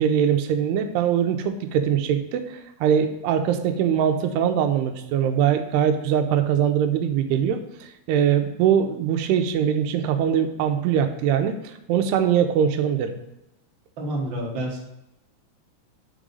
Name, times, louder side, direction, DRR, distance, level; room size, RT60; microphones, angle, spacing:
voice 1, 0.0-2.4 2.8-7.6 8.1-13.2, right 8 dB, 90° right, 7 dB, 2.7 m, -22 dB
voice 2, 14.0-14.8, right 1 dB, 65° right, -2 dB, 1.2 m, -28 dB
5.4 x 5.0 x 5.2 m, 0.91 s
omnidirectional pair, 4.7 m